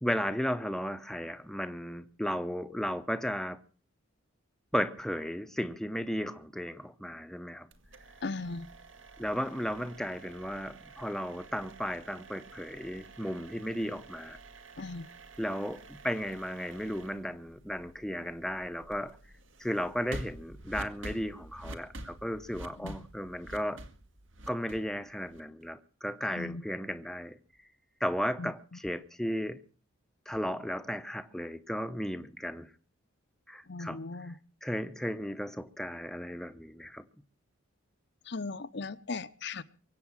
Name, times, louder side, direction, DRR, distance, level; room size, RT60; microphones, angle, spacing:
voice 1, 0.0-3.6 4.7-7.7 9.2-14.4 15.4-19.2 19.6-23.8 24.5-27.4 28.0-29.6 30.3-32.7 33.5-37.1, equal, ahead, 0.8 m, -35 dB
sound 1, 7.7-25.6, right 2 dB, 65° right, 1.9 m, -49 dB
voice 2, 8.2-8.7 14.8-15.1 22.8-22.9 26.3-26.6 28.4-28.5 33.7-34.3 38.3-39.6, left 3 dB, 55° left, 0.8 m, -37 dB
23.5 x 8.5 x 7.2 m
head